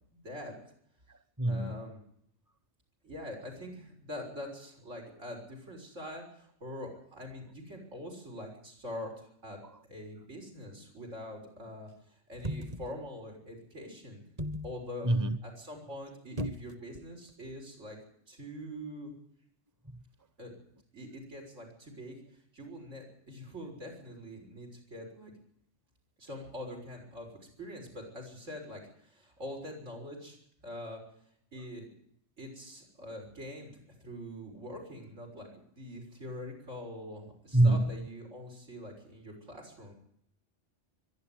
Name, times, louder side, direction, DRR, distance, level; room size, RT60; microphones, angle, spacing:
voice 1, 0.1-0.5 1.5-2.0 3.0-14.2 14.6-15.1 15.4-18.0 18.3-19.1 20.4-20.5 20.9-22.2 22.5-25.3 26.2-30.4 30.6-31.0 31.5-31.9 32.4-33.7 34.0-39.9, left 1 dB, 90° right, 6.9 m, -44 dB
voice 2, 1.1-1.9 15.0-15.4 19.9-20.0 37.5-38.1, right 1 dB, 20° right, 0.8 m, -27 dB
sound 1, 12.3-13.0 14.4-14.8 16.4-17.0 17.3-17.4, equal, 35° right, 1.0 m, -36 dB
23.5 x 11.5 x 9.7 m
omnidirectional pair, 1.2 m